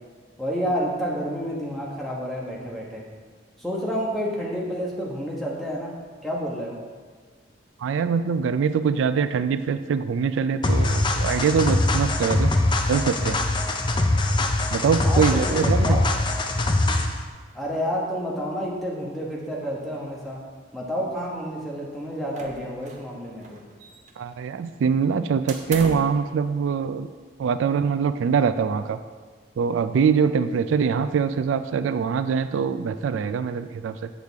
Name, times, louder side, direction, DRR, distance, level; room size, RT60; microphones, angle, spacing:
voice 1, 0.4-3.0 3.6-5.9 6.2-6.8 15.0-16.0 17.5-20.4 20.7-23.6, equal, ahead, -5 dB, 1.2 m, -29 dB
voice 2, 7.8-12.5 12.9-13.4 14.7-16.0 24.2-27.1 27.4-29.0 29.6-34.1, right 6 dB, 90° right, 11 dB, 0.3 m, -23 dB
sound 1, 10.6-17.2, left 2 dB, 25° left, 0.4 m, -22 dB
sound 2, 22.4-23.1 23.4-24.3 25.5-26.2, right 3 dB, 40° right, 0.7 m, -36 dB
8.1 x 6.5 x 3.5 m, 1.5 s
head